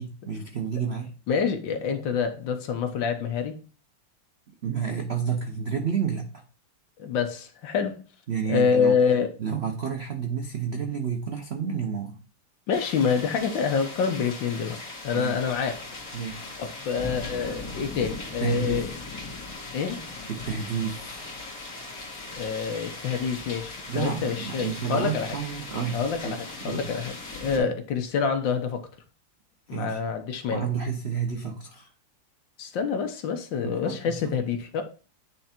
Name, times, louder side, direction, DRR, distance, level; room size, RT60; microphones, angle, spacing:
voice 1, 0.0-1.1 4.6-6.4 8.3-9.0 9.4-12.2 15.1-15.3 16.1-16.5 18.4-18.9 20.3-21.2 23.9-26.4 26.6-26.8 27.5-27.7 29.7-30.0 30.5-31.9 33.6-34.3, right 7 dB, 70° right, 0.6 m, -30 dB
voice 2, 1.3-3.6 7.0-8.0 8.5-9.3 12.7-14.8 15.0-15.9 16.6-18.9 19.7-20.0 22.3-25.3 25.9-28.9 29.7-30.7 32.6-34.8, left 6 dB, 65° left, 1.5 m, -27 dB
sound 1, 12.7-27.6, left 3 dB, 40° left, 2.5 m, -39 dB
9.1 x 3.4 x 4.3 m
omnidirectional pair, 2.4 m